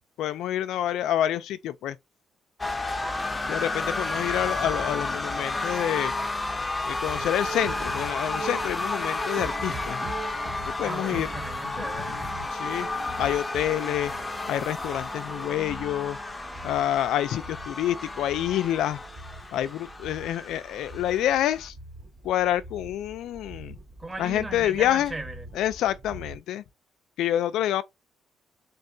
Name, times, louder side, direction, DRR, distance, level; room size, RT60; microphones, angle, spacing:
voice 1, 0.2-2.0 3.5-6.1 6.8-10.0 10.8-11.3 11.6-11.9 12.5-12.9 13.2-14.1 14.5-16.2 16.6-19.0 19.5-21.7 22.2-23.8 24.2-25.1 25.6-26.6 27.2-27.8, left 12 dB, 85° left, 0.3 m, -27 dB
sound 1, 2.6-21.7, left 2 dB, 20° left, 0.6 m, -32 dB
sound 2, 7.0-26.4, right 3 dB, 50° right, 2.2 m, -42 dB
voice 2, 10.8-12.2 24.0-25.5, right 2 dB, 20° right, 1.1 m, -37 dB
3.6 x 3.3 x 2.6 m
cardioid pair, 90°, 0 cm